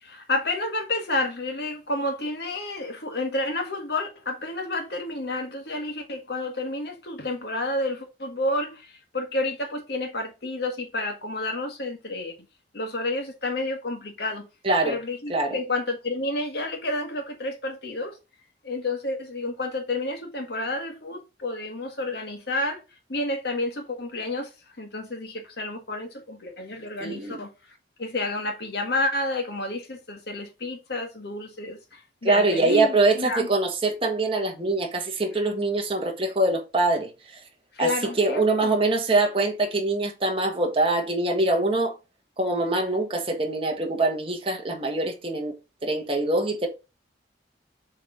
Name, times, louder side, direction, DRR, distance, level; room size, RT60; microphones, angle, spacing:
voice 1, 0.0-12.3 12.7-14.5 14.8-18.2 18.6-22.8 23.1-24.5 24.8-27.5 28.0-33.5 37.7-38.8, left 2 dB, 60° left, 1.6 m, -30 dB
voice 2, 14.6-15.0 15.3-15.6 27.0-27.4 32.2-37.1 37.8-37.9 38.2-41.9 42.4-45.5 45.8-46.7, right 2 dB, 30° right, 1.5 m, -24 dB
7.4 x 3.6 x 3.8 m
head